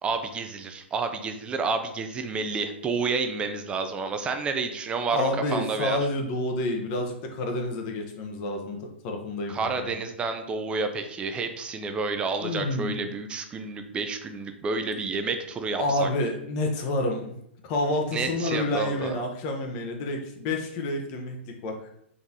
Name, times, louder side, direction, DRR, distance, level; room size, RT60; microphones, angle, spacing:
voice 1, 0.0-6.0 9.5-16.1 18.1-19.2, right 4 dB, 15° right, 7 dB, 0.4 m, -30 dB
voice 2, 5.1-10.0 12.4-13.0 15.8-17.3 17.6-21.4 21.6-21.9, left 2 dB, 35° left, 3 dB, 0.7 m, -29 dB
3.8 x 3.3 x 2.7 m, 0.70 s
figure-of-eight pair, 110°, 7 cm